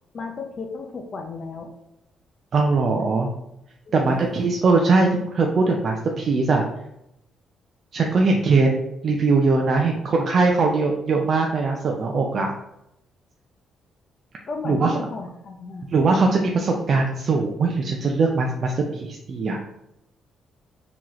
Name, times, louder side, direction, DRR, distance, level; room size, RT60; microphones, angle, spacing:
voice 1, 0.1-1.7 3.9-4.2 14.5-15.9 16.7-16.8, left 4 dB, 45° left, 3 dB, 0.5 m, -34 dB
voice 2, 2.5-3.3 3.9-6.6 7.9-8.7 9.0-12.5 14.6-14.9 15.9-19.6, right 3 dB, 50° right, 1 dB, 0.4 m, -21 dB
3.7 x 2.9 x 3.0 m, 0.84 s
cardioid pair, 90°, 0 cm